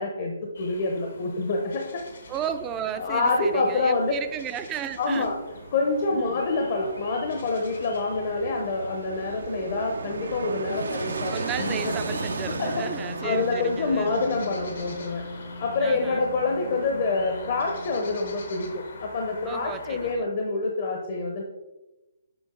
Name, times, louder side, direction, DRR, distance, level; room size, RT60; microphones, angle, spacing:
voice 1, 0.0-2.0 3.0-4.1 5.0-5.3 5.7-11.9 12.5-12.7 13.2-15.2 15.6-21.4, left 3 dB, 45° left, 1 dB, 0.8 m, -27 dB
sound 1, 0.5-20.2, left 4 dB, 70° left, 1.1 m, -45 dB
Fixed-wing aircraft airplane, 2.0-19.0 19.3-19.4, right 3 dB, 80° right, 0.6 m, -38 dB
voice 2, 2.3-5.3 6.1-6.4 10.9-14.2 15.8-16.3 19.4-20.3, right 9 dB, 20° right, 10 dB, 0.4 m, -35 dB
Wind instrument woodwind instrument, 11.6-18.5, left 3 dB, 90° left, 0.4 m, -40 dB
7.1 x 3.9 x 3.8 m, 1.0 s
hypercardioid pair, 155°, 0 cm